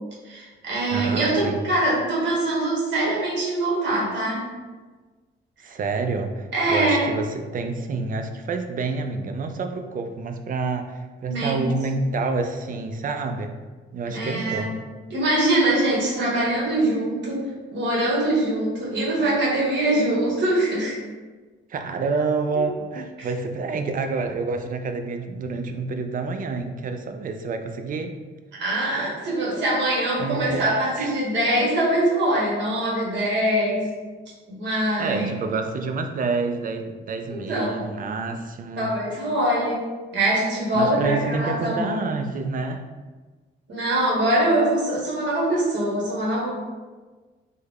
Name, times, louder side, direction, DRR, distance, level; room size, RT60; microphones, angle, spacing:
voice 1, 0.2-4.5 6.5-7.1 11.2-11.7 14.1-14.7 15.1-21.0 22.5-22.6 23.2-23.3 28.5-33.9 34.5-35.3 37.3-37.8 38.8-39.8 40.1-42.0 43.7-46.5, right 1 dB, 65° right, -4 dB, 1.3 m, -23 dB
voice 2, 0.9-1.6 5.6-13.6 13.9-14.7 21.7-28.1 30.2-31.1 35.0-38.9 40.7-42.8, right 4 dB, 45° right, 6 dB, 0.4 m, -28 dB
3.5 x 2.1 x 3.4 m, 1.3 s
cardioid pair, 90°, 20 cm